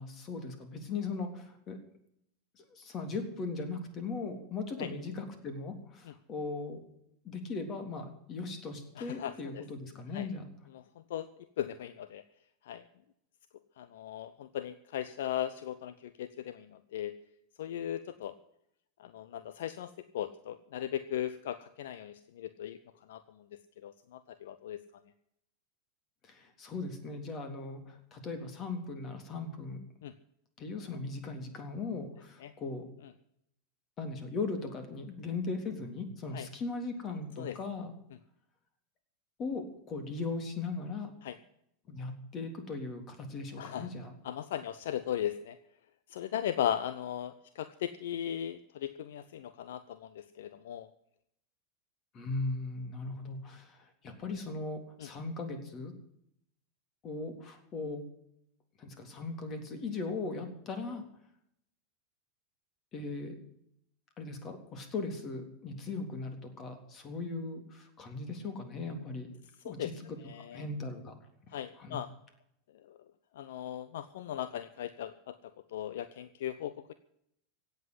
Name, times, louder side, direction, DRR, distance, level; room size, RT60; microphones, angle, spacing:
voice 1, 0.0-1.8 2.6-6.8 7.2-10.5 26.2-29.8 30.6-32.9 34.0-37.9 39.4-41.1 41.9-44.1 52.1-55.9 57.0-58.0 58.8-61.0 62.9-63.4 64.2-69.3 69.6-70.2 70.5-71.1 71.8-72.0, left 3 dB, 35° left, 7 dB, 3.6 m, -38 dB
voice 2, 9.0-9.6 10.1-10.3 11.1-11.3 11.6-12.2 12.7-12.8 13.8-15.9 16.2-16.7 16.9-17.1 17.6-18.3 19.0-22.8 23.1-23.2 23.8-24.8 30.0-30.1 32.4-32.5 36.3-36.5 37.4-37.6 41.2-41.3 43.6-43.9 44.2-45.5 46.1-50.9 69.6-69.9 70.3-70.6 71.5-72.1 73.4-75.1 75.7-76.9, left 10 dB, 65° left, 13 dB, 0.8 m, -37 dB
17.0 x 8.1 x 9.9 m, 0.74 s
figure-of-eight pair, 90°, 0 cm